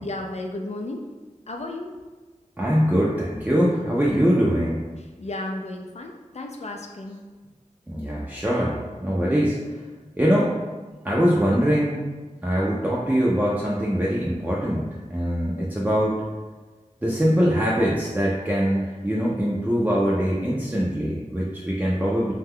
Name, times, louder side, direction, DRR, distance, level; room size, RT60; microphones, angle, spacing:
voice 1, 0.0-1.1 1.5-2.0 5.0-7.2 15.6-16.0, left 2 dB, 55° left, 2 dB, 0.4 m, -34 dB
voice 2, 2.6-4.8 7.9-9.6 10.2-10.6 11.0-12.1 12.4-16.2 17.0-22.3, equal, 10° right, -6 dB, 0.4 m, -22 dB
2.7 x 2.2 x 3.5 m, 1.3 s
wide cardioid pair, 55°, 13 cm